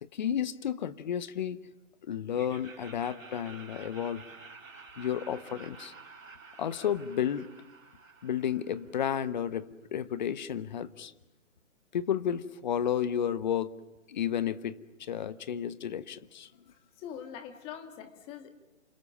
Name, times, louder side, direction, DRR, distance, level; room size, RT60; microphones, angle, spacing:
voice 1, 0.0-1.6 2.1-4.2 5.0-5.9 6.6-7.5 8.2-11.1 11.9-13.7 14.1-16.5, left 9 dB, 35° left, 15 dB, 1.1 m, -32 dB
Laughter, 2.3-9.3, right 4 dB, 90° right, 3.8 m, -51 dB
voice 2, 17.0-18.5, left 8 dB, 15° left, 8 dB, 1.6 m, -43 dB
28.5 x 26.5 x 7.2 m, 1.0 s
hypercardioid pair, 150°, 39 cm